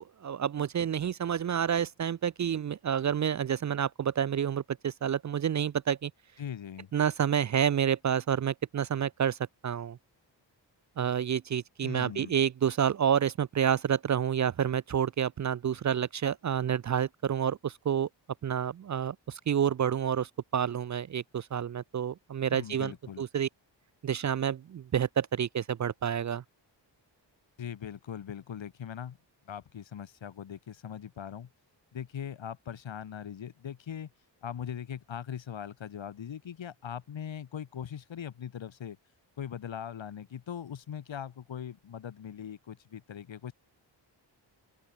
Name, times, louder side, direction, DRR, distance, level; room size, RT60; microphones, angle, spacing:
voice 1, 0.0-6.1 6.9-10.0 11.0-18.1 18.4-22.9 23.2-23.5 24.0-26.4, right 8 dB, 40° right, 0.5 m, -29 dB
voice 2, 6.4-6.9 11.8-12.3 22.5-23.2 27.6-29.2 29.5-31.5 31.9-34.1 34.4-39.0 39.4-43.5, left 9 dB, 85° left, 6.2 m, -40 dB
open air
wide cardioid pair, 160°, 44 cm